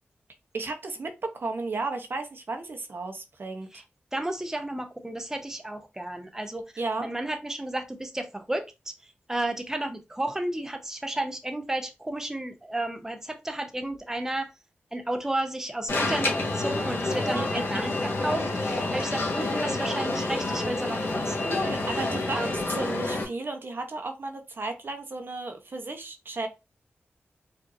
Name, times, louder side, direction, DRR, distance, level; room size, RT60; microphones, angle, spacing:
voice 1, 0.5-3.7 6.8-7.1 17.3-17.4 21.5-22.4 22.7-26.5, right 3 dB, 55° right, 0.8 m, -34 dB
voice 2, 4.1-6.7 7.0-14.5 14.9-17.9 18.2-22.1 22.4-22.6, right 1 dB, 10° right, 0.7 m, -33 dB
Alarm, 15.9-23.2, left 2 dB, 60° left, 1.5 m, -28 dB
4.7 x 2.6 x 2.6 m
wide cardioid pair, 70°, 4 cm